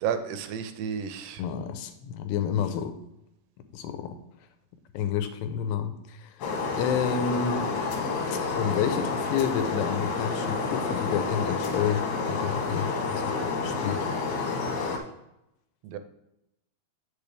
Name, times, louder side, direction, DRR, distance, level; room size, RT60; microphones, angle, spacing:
voice 1, 0.0-1.4 15.8-16.0, right 8 dB, 85° right, 9 dB, 2.9 m, -31 dB
voice 2, 1.4-2.9 3.7-4.2 4.9-6.4 6.8-7.7 8.3-14.1, left 8 dB, 85° left, 8 dB, 2.8 m, -30 dB
sound 1, 6.4-15.0, left 4 dB, 70° left, 2.8 m, -29 dB
8.7 x 6.9 x 3.3 m, 0.85 s
omnidirectional pair, 5.0 m